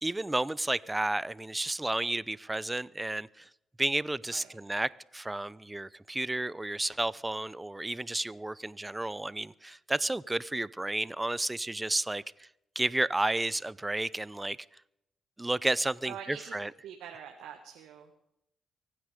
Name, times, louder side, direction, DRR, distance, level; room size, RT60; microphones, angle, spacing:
voice 1, 0.0-3.5 3.8-12.5 12.8-14.6 15.4-16.7, right 2 dB, 15° right, 0.6 m, -32 dB
voice 2, 16.0-16.6 16.8-18.1, right 8 dB, 80° right, 1.6 m, -45 dB
24.0 x 9.7 x 5.1 m
supercardioid pair, 50°, 0 cm